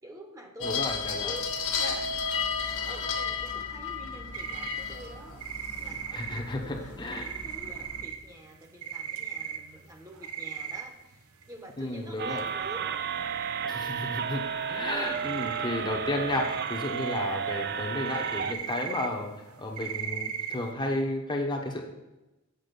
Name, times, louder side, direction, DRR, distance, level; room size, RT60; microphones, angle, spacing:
voice 1, 0.0-2.2 2.6-12.8, right 1 dB, 15° right, 3 dB, 1.1 m, -47 dB
sound 1, 0.6-8.0, left 5 dB, 70° left, 1.3 m, -33 dB
voice 2, 0.6-1.3 6.1-7.3 11.8-12.4 13.7-14.4 14.7-21.8, left 1 dB, 20° left, 0 dB, 1.0 m, -32 dB
sound 2, 4.3-11.1 11.4-11.5 11.8-11.9 12.1-12.4 12.8-12.9 13.1-13.6 13.9-14.7 15.0-16.0 16.3-20.7, right 8 dB, 80° right, 0.9 m, -38 dB
sound 3, 12.2-18.5, right 7 dB, 50° right, 0.4 m, -32 dB
8.2 x 4.9 x 6.8 m, 0.99 s
head